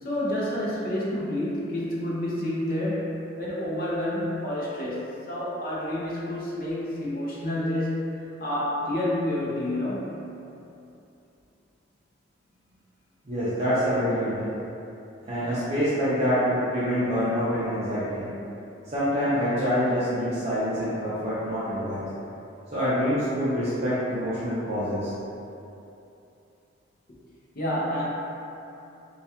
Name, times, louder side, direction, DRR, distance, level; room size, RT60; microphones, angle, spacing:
voice 1, 0.0-10.1 27.5-28.0, left 1 dB, 45° left, -6 dB, 0.5 m, -29 dB
voice 2, 13.2-14.4 15.2-18.3 18.9-22.0 22.7-25.1, equal, 35° right, -12 dB, 0.4 m, -26 dB
2.2 x 2.2 x 2.7 m, 2.8 s
head